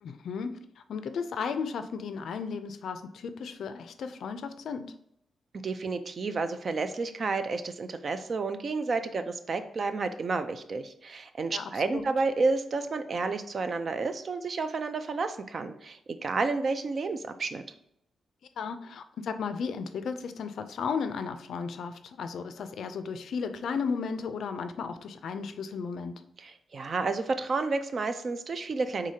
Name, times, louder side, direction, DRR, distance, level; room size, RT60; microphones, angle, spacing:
voice 1, 0.0-4.9 11.5-12.0 18.6-26.2, left 5 dB, 70° left, 9 dB, 0.4 m, -35 dB
voice 2, 5.6-17.6 26.4-29.1, right 3 dB, 40° right, 9 dB, 0.4 m, -31 dB
4.9 x 3.7 x 2.8 m, 0.75 s
wide cardioid pair, 155°, 0 cm